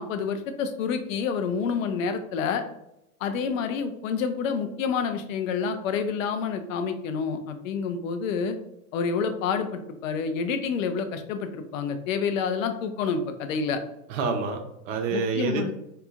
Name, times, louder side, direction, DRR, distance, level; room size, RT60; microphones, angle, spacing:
voice 1, 0.0-2.6 3.2-8.6 8.9-13.8 15.1-15.7, left 6 dB, 65° left, 8 dB, 0.6 m, -28 dB
voice 2, 14.1-15.7, right 4 dB, 55° right, 4 dB, 0.7 m, -28 dB
2.8 x 2.3 x 2.4 m, 0.85 s
hypercardioid pair, 110°, 44 cm